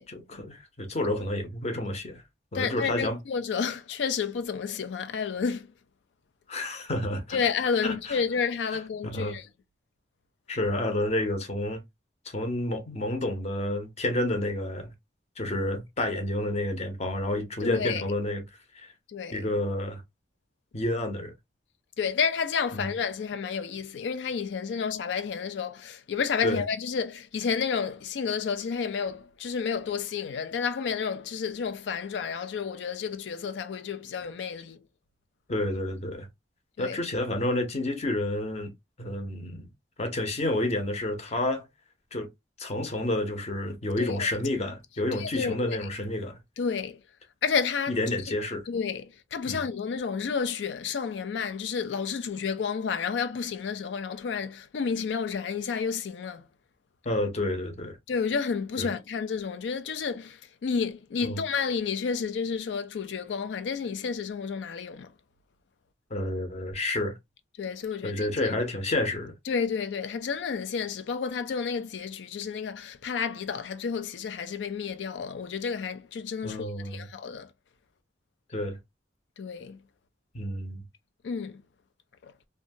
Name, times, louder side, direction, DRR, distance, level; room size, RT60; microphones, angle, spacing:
voice 1, 0.1-2.2 2.5-3.2 6.5-7.4 7.8-8.2 9.0-9.4 10.5-11.8 12.2-14.9 15.4-18.4 18.7-18.9 19.3-20.0 20.7-21.3 22.7-22.9 26.4-26.6 35.5-36.3 36.8-38.7 39.0-39.7 40.0-41.6 42.1-42.3 42.6-46.4 47.9-48.6 49.5-49.6 57.0-58.0 58.8-58.9 61.2-61.4 66.1-67.2 68.0-69.3 76.4-77.1 78.5-78.8 80.3-80.8, left 1 dB, 40° left, 0.7 m, -30 dB
voice 2, 2.5-5.7 7.3-9.5 17.6-18.0 19.1-19.5 22.0-34.8 36.8-37.0 44.0-44.3 45.1-45.8 46.6-47.0 47.4-48.0 48.7-56.5 58.1-65.1 67.6-68.5 69.5-77.5 79.4-79.8 81.2-81.6 82.2-82.3, left 6 dB, 85° left, 0.4 m, -31 dB
2.7 x 2.2 x 2.6 m
head